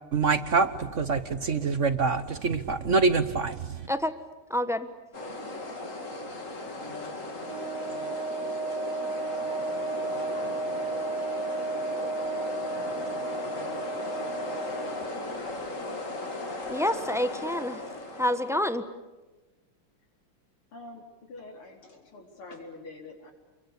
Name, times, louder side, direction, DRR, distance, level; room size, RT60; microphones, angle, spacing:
voice 1, 0.1-3.9, right 4 dB, 50° right, 12 dB, 1.0 m, -25 dB
voice 2, 4.5-4.9 16.7-17.8 18.2-18.8, left 1 dB, ahead, 10 dB, 0.7 m, -27 dB
sound 1, 5.1-18.6, left 2 dB, 35° left, 3.0 m, -37 dB
Wind instrument woodwind instrument, 7.4-15.2, right 3 dB, 75° right, 2.2 m, -33 dB
voice 3, 15.6-16.5 20.7-23.3, left 2 dB, 90° left, 2 dB, 5.2 m, -46 dB
30.0 x 22.5 x 8.4 m, 1.2 s
omnidirectional pair, 2.3 m